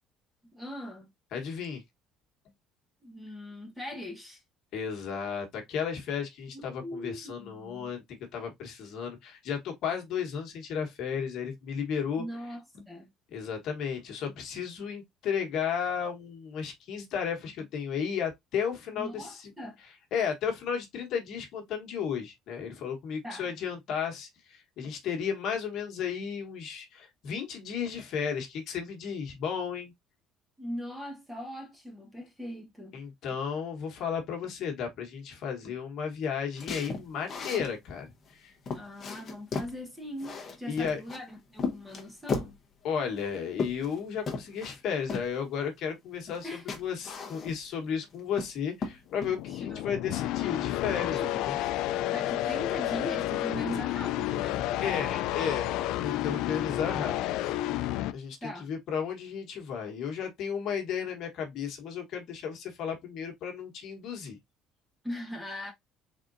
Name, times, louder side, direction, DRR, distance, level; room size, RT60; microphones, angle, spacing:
voice 1, 0.5-1.1 3.0-4.4 6.5-7.9 12.2-13.1 19.0-19.8 23.2-23.5 30.6-33.0 38.7-42.6 46.4-46.6 49.7-50.1 51.1-51.7 52.1-54.6 58.4-58.7 65.0-65.7, equal, 5° right, 1.3 m, -40 dB
voice 2, 1.3-1.8 4.7-12.9 13.3-19.5 19.8-29.9 32.9-38.5 40.7-41.0 42.8-51.6 54.8-57.2 57.4-57.6 58.1-64.4, left 7 dB, 50° left, 1.4 m, -34 dB
sound 1, 36.6-37.7 38.3-38.4 38.7-39.8 40.2-41.2 41.6-42.6 43.2-44.0 44.3-44.8 45.1-45.3 46.3-46.4 46.7-47.7 48.1-48.5 48.8-49.3, left 4 dB, 30° left, 1.0 m, -35 dB
sound 2, 49.2-58.1, left 14 dB, 70° left, 0.4 m, -31 dB
4.1 x 3.8 x 2.6 m
cardioid pair, 160°, 0 cm